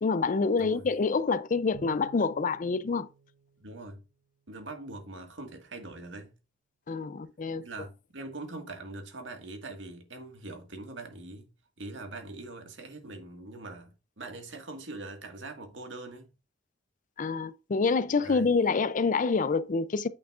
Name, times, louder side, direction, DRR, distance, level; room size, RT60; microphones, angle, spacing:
voice 1, 0.0-3.1 6.9-7.6 17.2-20.1, left 4 dB, 45° left, 0.5 m, -27 dB
Bowed string instrument, 1.7-4.4, right 6 dB, 60° right, 2.7 m, -53 dB
voice 2, 3.6-4.0 4.5-6.3 7.5-11.5 11.8-16.3 18.2-18.5, right 2 dB, 85° right, 1.8 m, -42 dB
8.6 x 5.9 x 2.4 m
head